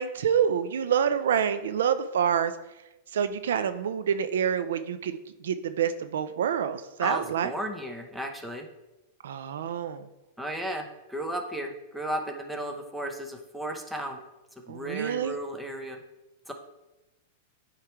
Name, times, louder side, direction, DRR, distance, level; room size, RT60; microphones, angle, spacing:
voice 1, 0.0-2.5 3.1-5.2 5.4-7.5 9.2-10.1 14.7-15.4, right 8 dB, 80° right, 11 dB, 0.4 m, -27 dB
voice 2, 7.0-8.7 10.4-14.2 14.7-16.0 16.5-16.6, right 1 dB, 5° right, 3 dB, 0.8 m, -34 dB
8.6 x 3.1 x 4.5 m, 0.98 s
hypercardioid pair, 130°, 0 cm